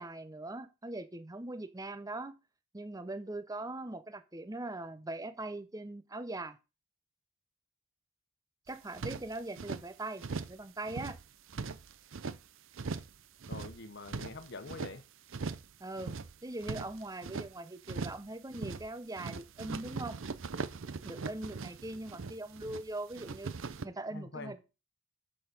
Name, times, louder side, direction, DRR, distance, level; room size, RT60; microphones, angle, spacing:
voice 1, 0.0-2.4 2.7-6.6 8.7-10.2 10.5-11.2 15.8-20.2 21.0-24.6, right 2 dB, 15° right, 0.7 m, -41 dB
sound 1, 8.7-9.8 10.2-10.6 10.9-12.4 12.7-13.2 13.4-14.9 15.3-15.7 16.0-17.5 17.8-18.3 18.5-18.9 19.2-22.8 23.1-23.9, right 4 dB, 65° right, 0.6 m, -40 dB
voice 2, 13.5-15.0 24.1-24.6, left 3 dB, 55° left, 1.2 m, -45 dB
7.8 x 7.0 x 5.3 m
head